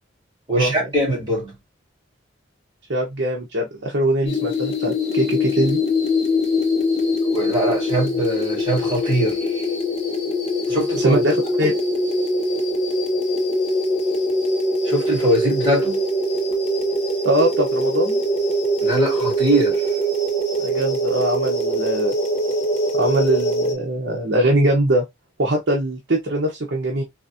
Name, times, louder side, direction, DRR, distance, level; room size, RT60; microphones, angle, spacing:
voice 1, 0.5-1.6 7.3-9.7 10.7-11.2 11.6-11.7 14.8-16.0 18.8-19.8, right 1 dB, 20° right, 2.2 m, -22 dB
voice 2, 2.9-5.8 11.0-11.7 17.2-18.2 20.6-22.1 22.9-25.0 25.4-27.0, right 1 dB, 60° right, 0.9 m, -21 dB
sound 1, 4.3-23.7, equal, 30° left, 0.7 m, -22 dB
4.0 x 2.5 x 2.7 m
head